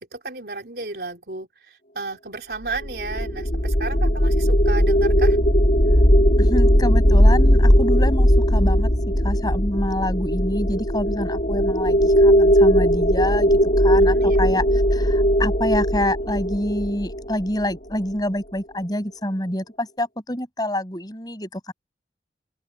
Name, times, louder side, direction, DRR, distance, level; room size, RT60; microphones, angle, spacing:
voice 1, 0.1-5.4 14.1-14.5, right 3 dB, 65° right, 3.8 m, -33 dB
sound 1, 2.7-17.9, equal, 50° left, 2.7 m, -18 dB
voice 2, 6.4-8.9 9.2-14.6 14.9-21.7, left 1 dB, 20° left, 6.5 m, -27 dB
open air
head